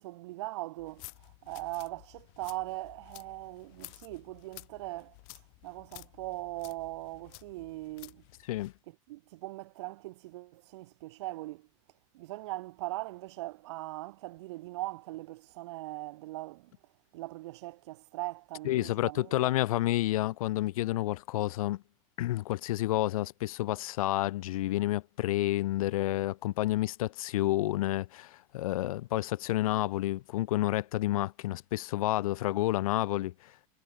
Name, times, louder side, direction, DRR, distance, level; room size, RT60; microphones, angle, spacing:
voice 1, 0.0-5.2 5.6-8.2 8.9-11.7 12.1-16.7 17.1-19.5, right 19 dB, 55° right, 1.0 m, -40 dB
sound 1, 0.8-8.8, left 32 dB, 45° left, 3.7 m, -53 dB
voice 2, 18.6-21.8 22.2-33.3, left 16 dB, 90° left, 0.4 m, -30 dB
supercardioid pair, 170°, 18 cm